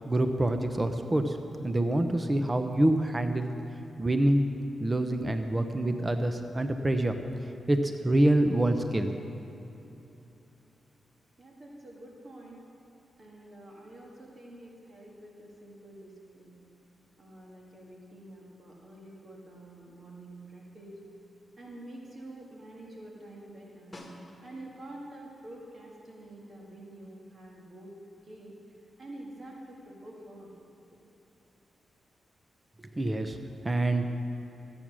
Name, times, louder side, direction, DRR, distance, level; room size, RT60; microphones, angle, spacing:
voice 1, 0.0-1.4 1.6-3.5 4.0-4.5 4.8-7.2 7.7-9.1 33.0-33.4 33.6-34.0, right 1 dB, 25° right, 7 dB, 0.7 m, -26 dB
voice 2, 11.4-12.6 13.2-16.6 17.2-21.0 21.6-24.0 24.4-27.9 28.2-28.5 29.0-30.5, right 1 dB, 50° right, -3 dB, 2.0 m, -47 dB
Snare drum, 23.9-24.8 29.3-29.4, left 1 dB, 20° left, 1.8 m, -48 dB
14.0 x 8.7 x 6.2 m, 3.0 s
cardioid pair, 80°, 0 cm